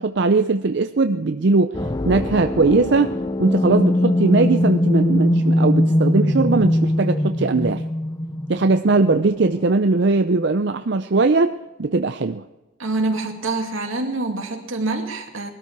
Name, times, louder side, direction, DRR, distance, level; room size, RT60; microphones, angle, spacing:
voice 1, 0.0-7.8 8.5-12.4, right 3 dB, 55° right, 8 dB, 0.6 m, -20 dB
sound 1, 1.7-9.5, left 1 dB, 20° left, 0.6 m, -21 dB
voice 2, 12.8-15.5, right 2 dB, 80° right, 3 dB, 2.4 m, -25 dB
20.5 x 13.0 x 4.7 m, 1.1 s
head